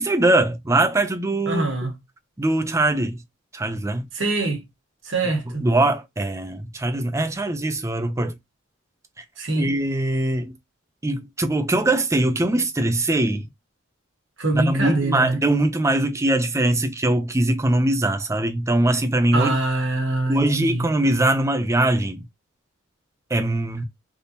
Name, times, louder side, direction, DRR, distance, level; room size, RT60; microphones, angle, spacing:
voice 1, 0.0-1.7 2.4-3.2 3.5-4.1 5.6-8.3 9.5-10.5 11.0-13.5 14.5-19.6 20.3-22.3 23.3-23.8, right 1 dB, 15° right, 0.4 m, -21 dB
voice 2, 1.5-1.9 4.1-4.6 5.1-5.6 9.4-9.7 14.4-15.4 19.3-20.9, right 2 dB, 65° right, 1.4 m, -24 dB
3.5 x 2.7 x 2.6 m
head